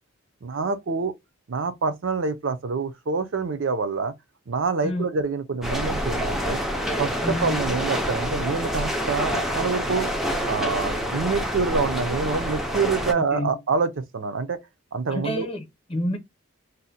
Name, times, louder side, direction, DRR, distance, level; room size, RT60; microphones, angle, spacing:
voice 1, 0.4-1.1 1.5-4.1 4.5-6.6 7.0-10.1 10.5-14.6 14.9-15.5, right 4 dB, 65° right, 0.5 m, -26 dB
sound 1, 5.6-13.1, equal, ahead, 0.4 m, -27 dB
voice 2, 7.2-7.6 13.1-13.6 15.1-16.2, left 1 dB, 30° left, 0.8 m, -29 dB
2.7 x 2.1 x 4.0 m
head